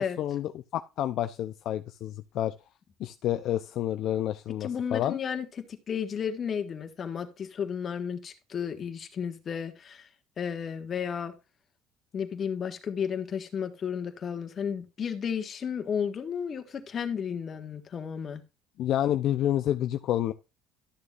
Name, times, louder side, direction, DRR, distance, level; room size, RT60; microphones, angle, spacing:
voice 1, 0.0-2.5 3.0-5.2 18.8-20.3, left 12 dB, 55° left, 0.6 m, -29 dB
voice 2, 4.6-10.1 10.4-11.3 12.1-18.4, left 7 dB, 30° left, 1.6 m, -33 dB
12.5 x 6.9 x 2.6 m
cardioid pair, 140°, 0 cm